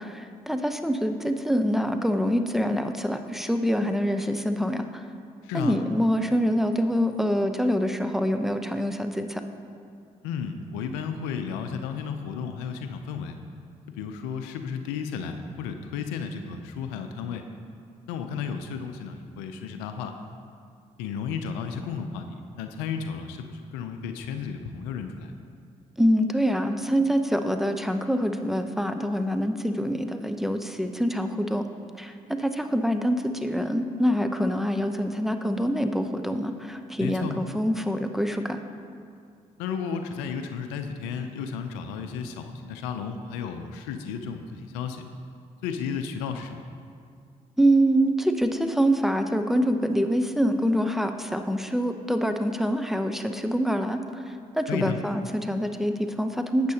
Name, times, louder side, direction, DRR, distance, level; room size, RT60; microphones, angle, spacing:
voice 1, 0.0-5.0 5.5-9.4 26.0-31.6 31.9-38.6 47.6-54.2 54.5-56.7, equal, ahead, 7 dB, 0.7 m, -25 dB
voice 2, 5.4-5.8 10.2-13.4 13.9-17.4 18.1-20.1 21.0-22.3 22.5-25.3 37.0-37.4 39.6-45.0 45.6-46.7 54.7-55.0, left 6 dB, 85° left, 7 dB, 0.5 m, -33 dB
11.5 x 8.3 x 2.9 m, 2.3 s
hypercardioid pair, 50°, 17 cm